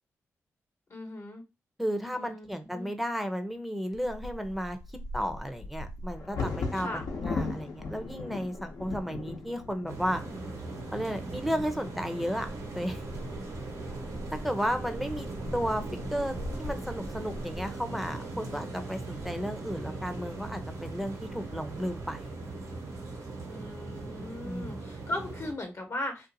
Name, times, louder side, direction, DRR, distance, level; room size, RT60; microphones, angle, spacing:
voice 1, 0.9-1.4 2.1-2.9 6.7-7.0 23.5-26.3, left 1 dB, 50° left, 4 dB, 1.0 m, -38 dB
voice 2, 1.8-4.8 5.1-10.2 10.9-12.5 12.7-13.0 14.4-15.8 16.1-22.3 24.4-24.8, equal, ahead, 6 dB, 0.6 m, -33 dB
Bird vocalization bird call bird song / Wind / Thunder, 3.9-19.8 20.5-20.6 20.9-21.3 21.7-22.3, left 3 dB, 75° left, 0.8 m, -40 dB
sound 1, 9.9-25.5, right 3 dB, 85° right, 1.0 m, -39 dB
2.5 x 2.4 x 2.7 m, 0.26 s
supercardioid pair, 45°, 6 cm